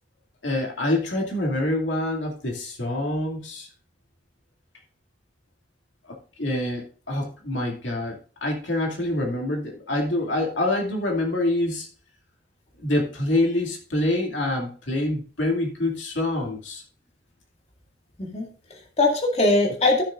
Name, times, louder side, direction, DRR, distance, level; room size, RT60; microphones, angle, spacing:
voice 1, 0.4-3.7 6.1-11.9 12.8-16.8, left 1 dB, 85° left, 0 dB, 2.4 m, -26 dB
voice 2, 18.2-20.0, left 2 dB, 35° left, 0 dB, 2.0 m, -22 dB
15.0 x 6.5 x 2.5 m, 0.39 s
head